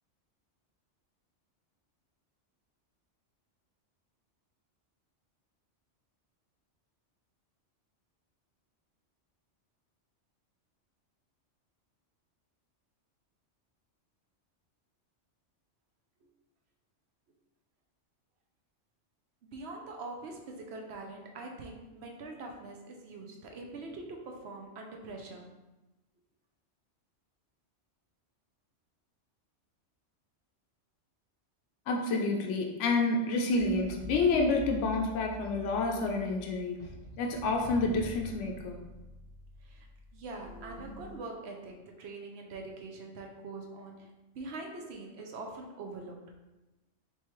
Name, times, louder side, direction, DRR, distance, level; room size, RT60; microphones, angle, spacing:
voice 1, 19.4-25.5 39.6-39.9 40.1-44.1 44.3-46.3, right 3 dB, 65° right, 1 dB, 0.9 m, -43 dB
voice 2, 31.9-36.9 37.2-38.8, left 3 dB, 75° left, 2 dB, 0.9 m, -29 dB
sound 1, 33.5-41.2, right 1 dB, 10° right, 1.1 m, -46 dB
4.6 x 3.2 x 3.0 m, 1.0 s
omnidirectional pair, 1.2 m